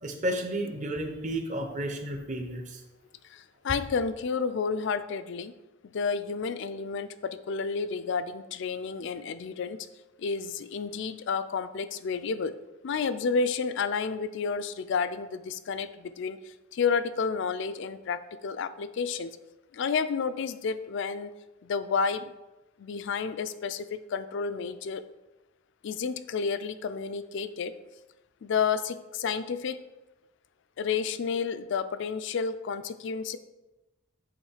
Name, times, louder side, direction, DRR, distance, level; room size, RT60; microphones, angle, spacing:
voice 1, 0.0-2.8, right 1 dB, 35° right, 4 dB, 0.8 m, -32 dB
voice 2, 3.2-5.5 5.8-9.8 10.2-12.5 12.8-19.4 19.7-21.3 21.6-22.3 22.8-25.0 25.8-27.7 28.4-29.8 30.8-33.4, left 5 dB, 60° left, 13 dB, 0.4 m, -31 dB
8.2 x 3.1 x 4.9 m, 1.0 s
head